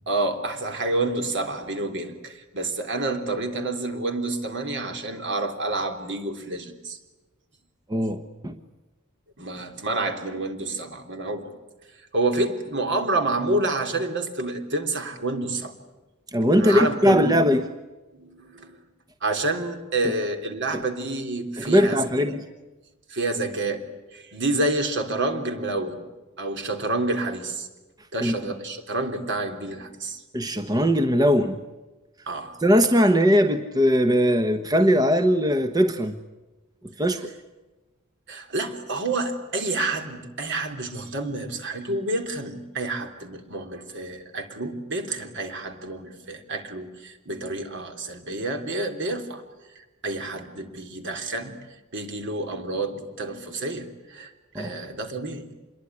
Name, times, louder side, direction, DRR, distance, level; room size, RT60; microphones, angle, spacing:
voice 1, 0.1-7.0 9.4-11.5 11.9-15.7 16.5-17.3 18.1-18.8 19.2-22.4 23.1-23.8 24.1-26.0 26.4-27.7 28.1-30.2 32.3-32.5 38.3-49.4 49.7-51.6 51.9-55.5, right 2 dB, 55° right, 6 dB, 3.4 m, -29 dB
voice 2, 7.9-8.5 16.3-17.6 21.6-22.4 28.2-28.3 30.3-31.6 32.6-36.1 37.0-37.2 54.5-54.7, equal, 20° right, 8 dB, 1.1 m, -20 dB
27.0 x 22.0 x 9.7 m, 1.1 s
head